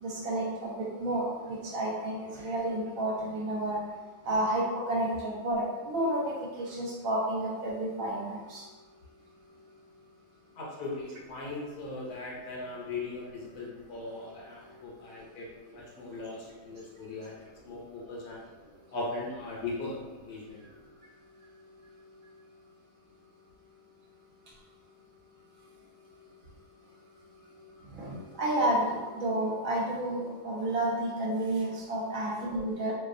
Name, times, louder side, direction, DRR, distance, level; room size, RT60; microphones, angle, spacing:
voice 1, 0.0-3.8 4.2-8.6 14.7-14.8 27.5-27.6 27.9-32.9, right 1 dB, 60° right, -5 dB, 1.0 m, -31 dB
voice 2, 10.6-17.4 17.7-18.4 18.9-20.6, left 2 dB, 70° left, -4 dB, 1.1 m, -39 dB
2.6 x 2.3 x 2.4 m, 1.2 s
omnidirectional pair, 1.7 m